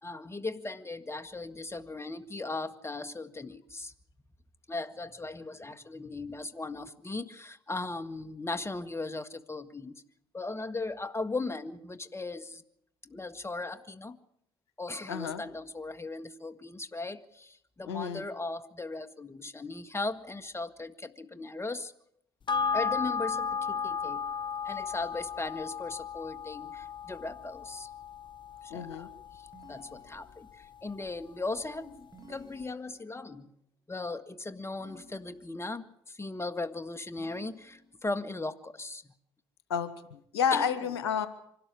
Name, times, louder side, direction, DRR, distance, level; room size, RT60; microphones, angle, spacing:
voice 1, 0.0-3.9 4.7-10.0 10.3-12.6 13.0-14.2 14.8-21.9 22.7-24.3 24.7-27.9 28.6-29.1 29.3-29.4 29.7-33.5 33.9-39.0 40.5-40.7, left 3 dB, 20° left, 10 dB, 1.9 m, -38 dB
voice 2, 15.1-15.4 17.9-18.2 28.7-29.1 39.7-41.3, left 7 dB, 90° left, 12 dB, 1.4 m, -30 dB
sound 1, 22.5-31.2 31.6-31.7, left 6 dB, 35° left, 0.9 m, -35 dB
sound 2, 29.5-30.7 32.1-33.3 34.7-35.8 37.2-38.2, right 1 dB, 30° right, 4.8 m, -55 dB
25.0 x 13.0 x 9.9 m, 0.73 s
hypercardioid pair, 55°, 13 cm